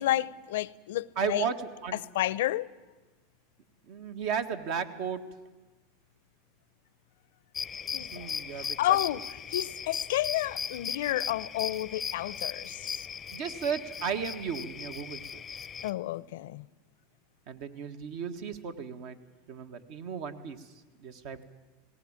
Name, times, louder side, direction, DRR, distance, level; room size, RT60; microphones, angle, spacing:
voice 1, 0.0-1.5 2.1-2.7 7.9-13.1 15.8-16.7, left 15 dB, 75° left, 0.6 m, -31 dB
voice 2, 1.2-1.5 1.8-2.0 3.9-5.2 8.1-8.8 13.3-15.4 17.5-19.2 19.5-20.7 21.0-21.4, right 7 dB, 60° right, 1.6 m, -34 dB
sound 1, 7.5-15.9, left 7 dB, 25° left, 0.6 m, -37 dB
18.5 x 18.0 x 8.9 m
hypercardioid pair, 110°, 0 cm